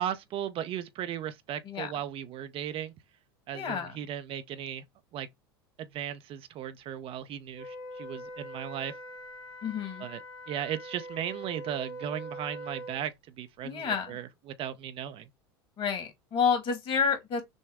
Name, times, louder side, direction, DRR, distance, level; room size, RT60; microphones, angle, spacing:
voice 1, 0.0-2.9 3.5-4.8 5.1-5.3 5.8-8.9 10.0-10.2 10.5-15.3, right 10 dB, 45° right, 0.7 m, -36 dB
voice 2, 3.5-3.9 9.6-10.1 13.6-14.2 15.8-17.4, left 6 dB, 45° left, 1.8 m, -29 dB
Wind instrument woodwind instrument, 7.5-13.0, right 1 dB, 70° left, 2.4 m, -43 dB
6.3 x 2.2 x 3.5 m
hypercardioid pair, 85°, 12 cm